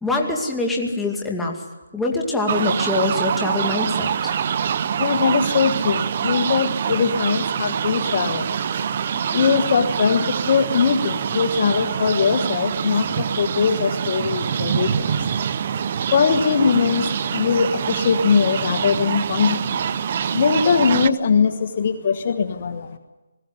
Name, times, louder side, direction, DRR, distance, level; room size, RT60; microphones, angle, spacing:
voice 1, 0.0-1.6 1.9-4.3, left 2 dB, 5° left, -1 dB, 2.2 m, -24 dB
sound 1, 2.5-21.1, right 7 dB, 40° right, 0.7 m, -25 dB
voice 2, 5.0-8.5 9.1-15.4 16.0-23.0, left 6 dB, 40° left, 7 dB, 1.4 m, -21 dB
20.5 x 15.5 x 9.8 m, 1.1 s
figure-of-eight pair, 160°, 0 cm